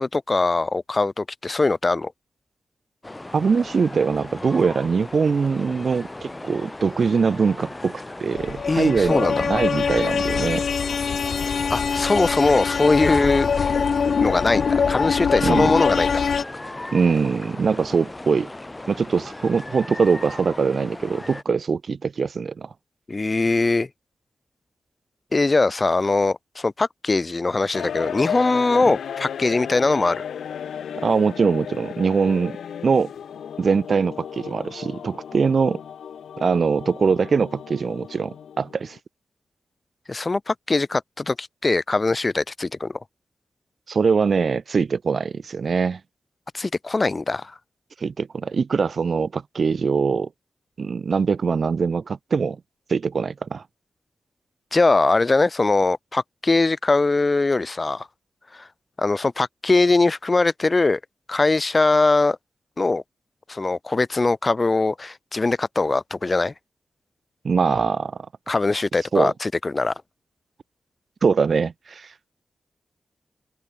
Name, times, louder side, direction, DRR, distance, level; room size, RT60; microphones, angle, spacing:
voice 1, 0.0-2.1 8.7-9.4 11.7-13.5 14.2-16.3 23.1-23.9 25.3-30.2 40.1-43.0 46.5-47.5 54.7-58.1 58.5-58.7 59.0-61.0 61.3-62.4 62.8-63.0 63.5-66.5 68.5-69.9, left 3 dB, 40° left, 1.9 m, -21 dB
sound 1, 3.0-21.4, left 2 dB, 20° left, 6.7 m, -37 dB
voice 2, 3.3-10.6 15.4-15.8 16.9-18.5 18.9-22.7 31.0-32.6 32.8-33.1 33.6-35.8 36.4-39.0 43.9-46.0 48.0-50.3 50.8-52.6 52.9-53.6 67.4-68.2 69.1-69.3 71.2-72.1, right 5 dB, 65° right, 3.5 m, -22 dB
sound 2, 8.3-16.4, left 6 dB, 70° left, 6.2 m, -23 dB
sound 3, 27.7-39.0, left 8 dB, 90° left, 5.1 m, -35 dB
open air
cardioid pair, 55°, 0 cm